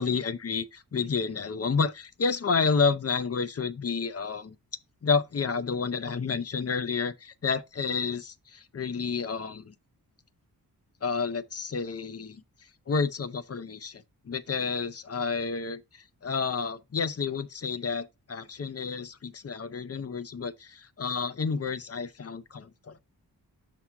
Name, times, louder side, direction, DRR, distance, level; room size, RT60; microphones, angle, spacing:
voice 1, 0.0-4.5 5.0-9.7 11.0-12.4 12.9-23.0, left 5 dB, 40° left, 0.6 m, -30 dB
6.0 x 3.5 x 4.6 m
wide cardioid pair, 95°, 38 cm